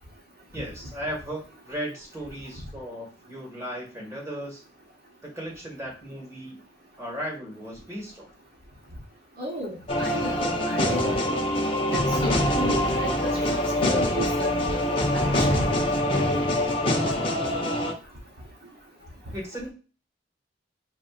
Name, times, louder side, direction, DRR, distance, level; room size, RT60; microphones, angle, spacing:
voice 1, 0.5-4.6 5.2-6.6 7.0-8.3 19.3-19.7, equal, 15° right, -2 dB, 1.7 m, -36 dB
voice 2, 9.4-11.3 11.9-14.8 15.1-15.6, equal, 60° right, -2 dB, 1.1 m, -34 dB
sound 1, 9.9-17.9, left 1 dB, 30° left, 0.7 m, -24 dB
6.4 x 2.6 x 2.4 m, 0.34 s
head